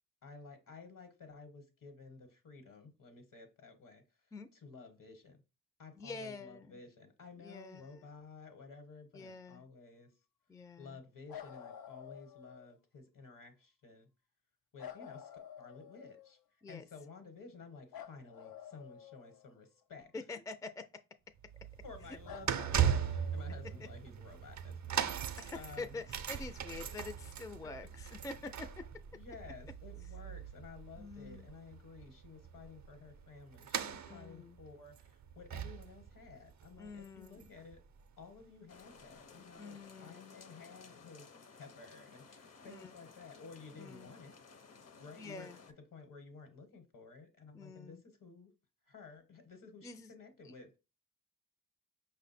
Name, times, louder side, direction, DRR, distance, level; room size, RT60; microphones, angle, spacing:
voice 1, 0.2-4.0 4.5-5.4 5.8-10.1 10.8-14.1 14.7-15.3 15.6-16.4 16.7-20.4 21.8-26.0 29.1-37.8 38.2-41.3 41.6-44.3 45.0-48.5 48.9-50.8, left 4 dB, 65° left, 1.1 m, -53 dB
voice 2, 6.0-6.8 7.4-8.0 9.1-9.6 10.5-11.0 16.6-16.8 20.1-20.8 25.4-28.7 31.0-31.5 33.9-34.6 36.8-37.5 39.6-40.3 42.6-43.0 43.8-44.1 45.2-45.6 47.5-48.0 49.8-50.1 50.4-50.5, left 3 dB, 10° left, 0.3 m, -47 dB
sound 1, 11.3-12.8 14.8-16.4 17.9-19.8 22.2-24.0 26.0-26.1, left 9 dB, 90° left, 0.5 m, -51 dB
sound 2, 21.4-37.7 38.0-38.2 39.0-39.1, right 8 dB, 55° right, 0.5 m, -39 dB
sound 3, 38.7-45.7, left 5 dB, 45° left, 0.6 m, -57 dB
5.2 x 2.1 x 4.1 m
cardioid pair, 60°, 35 cm